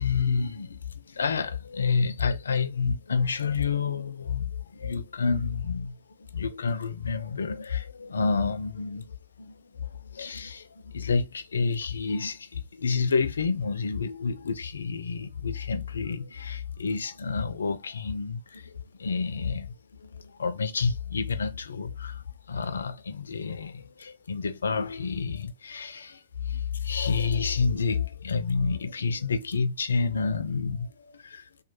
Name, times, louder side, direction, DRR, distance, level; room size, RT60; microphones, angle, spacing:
voice 1, 0.0-6.0 6.3-19.7 20.0-31.5, left 5 dB, 80° left, 0.4 m, -29 dB
3.0 x 2.2 x 2.9 m
figure-of-eight pair, 105°, 0 cm